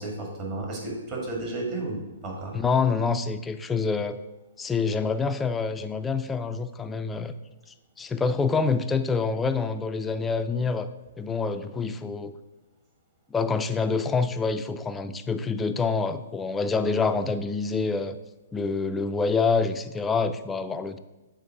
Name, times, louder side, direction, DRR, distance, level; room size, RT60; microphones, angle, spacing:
voice 1, 0.0-2.5, right 2 dB, 35° right, -1 dB, 1.8 m, -33 dB
voice 2, 2.5-4.2 4.6-7.3 8.0-10.9 11.2-12.4 13.3-18.2 18.5-21.0, left 4 dB, 10° left, 10 dB, 0.3 m, -26 dB
6.8 x 3.7 x 4.7 m, 1.1 s
figure-of-eight pair, 120°, 0 cm